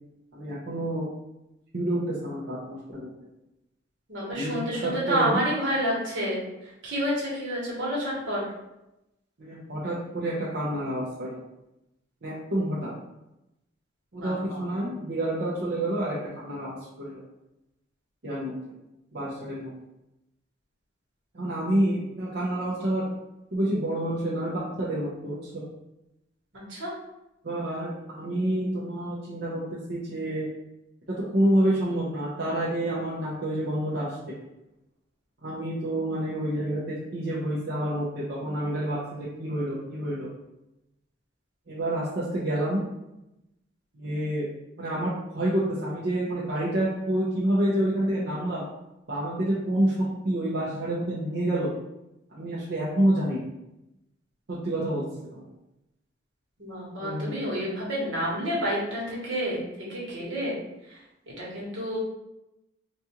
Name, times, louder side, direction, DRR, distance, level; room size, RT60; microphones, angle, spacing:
voice 1, 0.3-1.1 1.7-3.1 4.3-4.6 4.8-5.4 9.4-11.4 12.2-12.9 14.1-17.2 18.2-18.5 19.1-19.7 21.3-23.1 23.5-25.6 27.4-29.6 29.9-30.5 31.1-34.1 35.4-40.3 41.7-42.8 43.9-44.4 44.8-48.6 49.1-49.9 50.2-51.7 52.3-53.4 54.5-55.0 55.3-55.4 57.0-57.3, right 1 dB, 55° right, -8 dB, 0.7 m, -28 dB
voice 2, 4.1-8.4 14.2-14.7 26.7-26.9 56.6-59.6 59.9-60.5 60.9-61.0 61.4-62.0, equal, 75° right, -5 dB, 1.3 m, -29 dB
4.1 x 2.3 x 2.8 m, 0.91 s
head